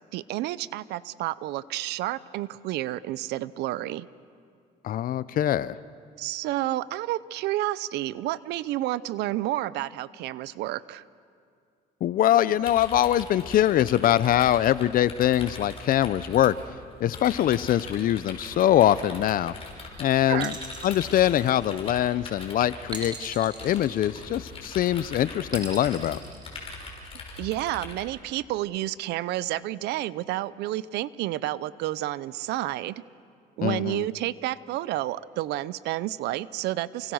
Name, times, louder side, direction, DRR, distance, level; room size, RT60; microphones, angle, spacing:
voice 1, 0.1-4.1 6.2-11.0 20.3-20.5 27.4-33.0 33.6-37.1, right 15 dB, 85° right, 19 dB, 0.6 m, -30 dB
voice 2, 4.8-5.8 12.0-16.5 17.0-19.5 20.0-20.5 20.8-26.2 33.6-34.1, left 12 dB, 55° left, 17 dB, 0.6 m, -23 dB
sound 1, 12.6-28.0, left 3 dB, 35° left, 5.2 m, -42 dB
sound 2, 20.4-22.0 22.9-24.6 25.5-27.1, right 3 dB, 25° right, 3.7 m, -40 dB
29.0 x 24.0 x 6.4 m, 2.3 s
cardioid pair, 110°, 17 cm